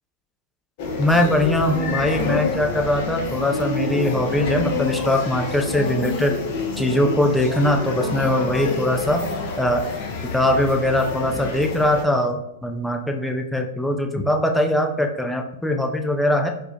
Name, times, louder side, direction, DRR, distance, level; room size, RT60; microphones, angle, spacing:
sound 1, 0.8-12.0, left 3 dB, 45° left, 0.6 m, -28 dB
voice 1, 1.0-6.4 6.8-9.2 9.6-9.9 10.3-16.5, left 1 dB, 5° left, 3 dB, 0.4 m, -21 dB
4.2 x 2.1 x 2.6 m, 0.85 s
figure-of-eight pair, 100°, 0 cm